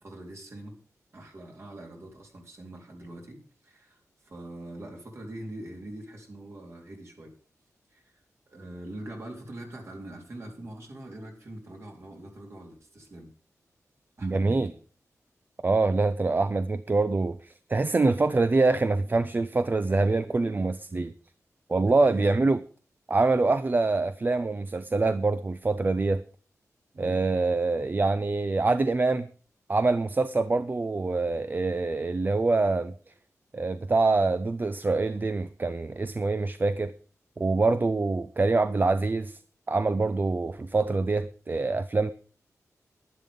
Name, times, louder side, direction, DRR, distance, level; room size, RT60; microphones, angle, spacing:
voice 1, 0.0-0.7 1.1-7.3 7.9-8.2 8.5-13.3 14.2-14.8 21.8-22.5 26.9-27.3, right 1 dB, 50° right, 4.0 m, -43 dB
voice 2, 14.2-14.7 15.6-21.1 21.7-22.6 23.1-26.2 27.0-29.3 29.7-32.9 33.5-36.9 37.4-39.4 39.7-42.1, right 3 dB, 35° right, 0.6 m, -25 dB
11.0 x 10.5 x 5.3 m
wide cardioid pair, 95°, 6 cm